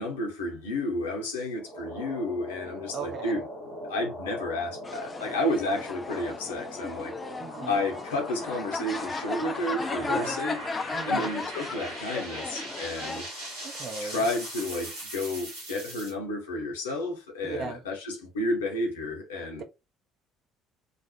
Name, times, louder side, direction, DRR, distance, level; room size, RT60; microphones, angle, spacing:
voice 1, 0.0-3.4 3.9-7.1 7.7-10.6 11.1-13.3 14.0-19.6, left 1 dB, 75° left, 0.7 m, -31 dB
sound 1, 1.5-16.1, equal, 80° right, 1.0 m, -40 dB
voice 2, 2.9-3.4 7.4-7.8 10.0-10.4 10.9-11.3 13.6-14.3 17.4-17.8 19.4-19.6, right 5 dB, 45° right, 0.6 m, -37 dB
sound 2, 4.8-13.2, left 4 dB, 25° left, 0.3 m, -35 dB
2.3 x 2.0 x 2.8 m
figure-of-eight pair, 50°, 0 cm